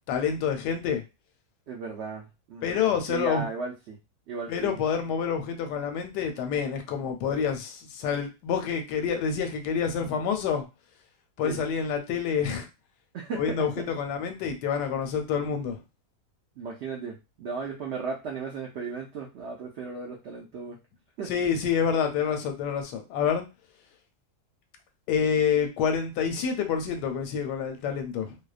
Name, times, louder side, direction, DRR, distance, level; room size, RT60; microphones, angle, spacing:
voice 1, 0.1-1.0 2.6-3.4 4.5-10.7 11.4-12.7 13.4-15.8 21.3-23.5 25.1-28.4, left 7 dB, 85° left, 6 dB, 1.2 m, -27 dB
voice 2, 1.7-4.0 4.3-4.7 11.4-11.7 13.1-13.8 16.6-20.8 21.2-21.3, right 4 dB, 85° right, -1 dB, 0.5 m, -36 dB
2.7 x 2.0 x 2.4 m, 0.27 s
omnidirectional pair, 1.7 m